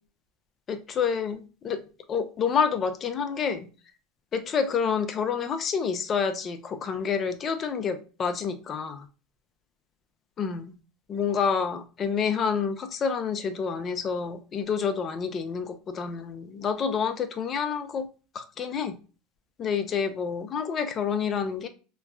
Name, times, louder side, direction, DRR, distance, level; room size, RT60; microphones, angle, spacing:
voice 1, 0.7-1.8 2.1-3.7 4.3-9.0 10.4-10.7 11.1-18.1 18.3-19.0 19.6-21.7, left 6 dB, 35° left, 9 dB, 0.5 m, -28 dB
3.1 x 2.1 x 2.3 m, 0.34 s
supercardioid pair, 105°, 0 cm